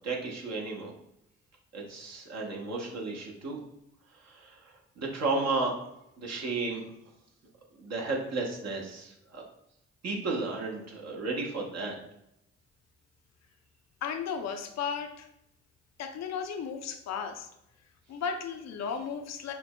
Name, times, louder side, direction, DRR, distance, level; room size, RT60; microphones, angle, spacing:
voice 1, 0.0-0.9 1.7-3.6 4.2-4.6 5.0-5.7 6.2-6.9 7.8-9.4 10.0-11.9, right 3 dB, 55° right, -1 dB, 1.0 m, -33 dB
voice 2, 14.0-15.3 16.0-17.5 18.1-19.5, left 6 dB, 60° left, 5 dB, 0.5 m, -35 dB
5.8 x 2.0 x 2.2 m, 0.82 s
hypercardioid pair, 45°, 31 cm